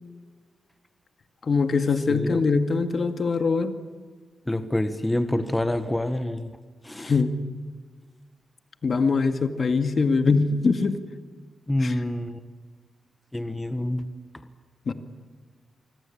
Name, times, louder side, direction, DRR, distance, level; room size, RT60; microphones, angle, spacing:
voice 1, 1.4-3.8 7.0-7.3 8.8-11.0 11.8-11.9 14.9-15.0, left 4 dB, 50° left, 8 dB, 2.1 m, -23 dB
voice 2, 2.1-2.4 4.5-6.5 6.8-7.1 11.7-12.4 13.3-14.0, left 1 dB, 10° left, 10 dB, 1.5 m, -27 dB
26.0 x 24.5 x 8.7 m, 1.5 s
cardioid pair, 85°, 0 cm